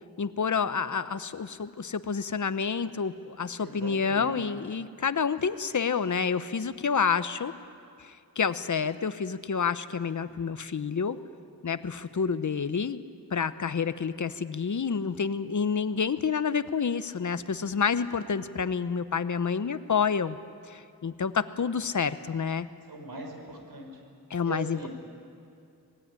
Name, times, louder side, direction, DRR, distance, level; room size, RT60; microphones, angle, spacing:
voice 1, 0.2-7.5 8.0-11.2 11.6-13.0 13.3-20.4 20.7-22.7 24.3-24.9, left 6 dB, 50° left, 12 dB, 1.0 m, -29 dB
voice 2, 3.6-4.4 22.9-24.0 24.4-24.9, right 2 dB, 75° right, 3 dB, 5.5 m, -40 dB
25.5 x 20.0 x 9.8 m, 2.5 s
wide cardioid pair, 95°, 37 cm